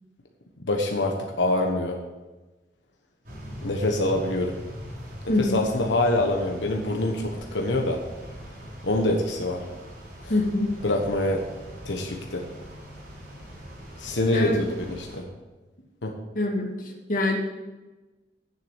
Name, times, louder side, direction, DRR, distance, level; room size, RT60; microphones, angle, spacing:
voice 1, 0.6-2.0 3.6-4.6 5.4-8.0 8.8-9.6 10.2-10.3 10.8-11.4 11.8-12.4 14.0-15.2 16.0-16.1, left 1 dB, 90° left, 2 dB, 1.3 m, -25 dB
sound 1, 3.2-15.2, equal, 55° right, 4.4 m, -42 dB
voice 2, 5.3-5.6 10.3-10.7 14.3-14.6 16.3-17.4, left 2 dB, 50° left, 0 dB, 2.1 m, -25 dB
9.6 x 7.6 x 8.2 m, 1.2 s
head